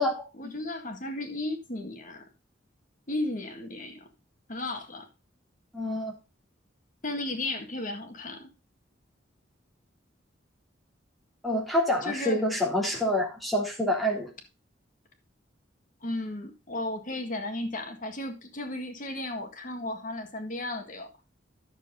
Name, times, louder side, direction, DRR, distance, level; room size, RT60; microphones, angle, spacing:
voice 1, 0.4-2.2 3.1-4.1 4.5-5.1 7.0-8.5 12.0-12.4 16.0-21.1, left 2 dB, 45° left, 5 dB, 1.8 m, -34 dB
voice 2, 5.7-6.1 11.4-14.3, left 1 dB, ahead, -2 dB, 3.1 m, -27 dB
10.5 x 7.2 x 3.9 m, 0.29 s
head